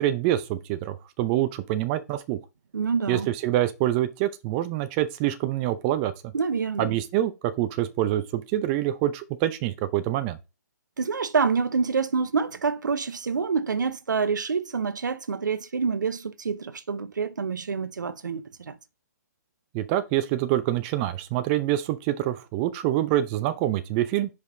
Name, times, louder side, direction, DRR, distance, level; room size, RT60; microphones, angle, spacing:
voice 1, 0.0-2.4 3.1-6.1 6.8-7.3 7.6-10.4 19.7-24.3, right 13 dB, 30° right, 0.6 m, -26 dB
voice 2, 2.7-3.3 6.3-7.0 11.0-18.8, right 5 dB, 80° right, 0.7 m, -27 dB
5.3 x 5.2 x 3.8 m
hypercardioid pair, 135°, 10 cm